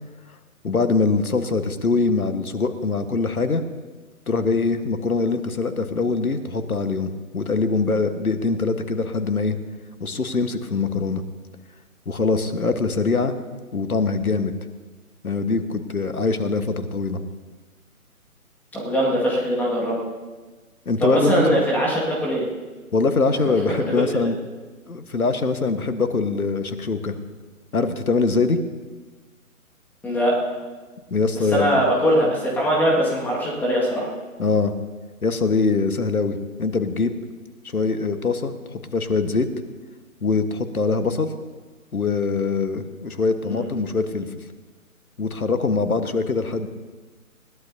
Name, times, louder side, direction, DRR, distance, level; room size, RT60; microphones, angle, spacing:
voice 1, 0.6-3.6 4.3-9.6 10.0-11.2 12.0-13.3 13.7-14.5 15.2-17.2 20.8-21.5 22.9-24.4 24.9-27.2 27.7-28.6 31.1-31.8 34.4-34.7 35.2-37.1 37.6-39.5 40.2-41.3 41.9-44.3 45.2-46.7, left 4 dB, 70° left, 9 dB, 1.5 m, -23 dB
voice 2, 18.7-20.0 21.0-22.4 23.4-23.8 30.0-30.3 31.5-34.1 43.4-43.6, equal, 5° left, -4 dB, 1.9 m, -21 dB
21.0 x 17.0 x 2.8 m, 1.3 s
figure-of-eight pair, 140°, 44 cm